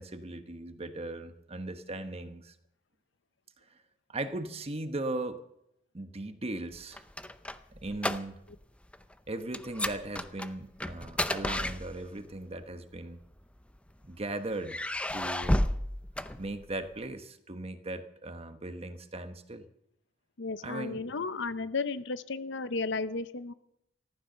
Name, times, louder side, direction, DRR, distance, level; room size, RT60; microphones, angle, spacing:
voice 1, 0.0-2.5 4.1-5.4 5.9-7.0 7.8-8.4 9.3-13.2 14.0-15.6 16.4-19.7 20.6-21.0, right 2 dB, 30° right, 9 dB, 1.1 m, -38 dB
sound 1, 6.7-8.6 8.9-9.1 9.5-12.3 13.2-14.1 14.6-16.9, left 1 dB, 5° left, 0.6 m, -32 dB
voice 2, 20.4-23.5, left 3 dB, 65° left, 13 dB, 0.8 m, -34 dB
14.5 x 14.5 x 6.7 m, 0.79 s
head